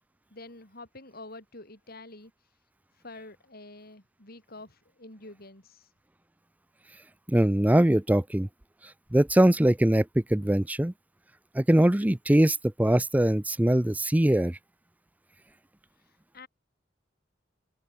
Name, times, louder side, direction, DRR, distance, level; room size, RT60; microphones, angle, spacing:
voice 1, 0.3-2.3 3.0-5.9 16.3-16.5, left 2 dB, 55° left, 7.0 m, -47 dB
voice 2, 7.3-8.5 9.1-10.1 10.3-10.9 11.5-14.6, right 1 dB, 10° right, 0.5 m, -22 dB
open air
head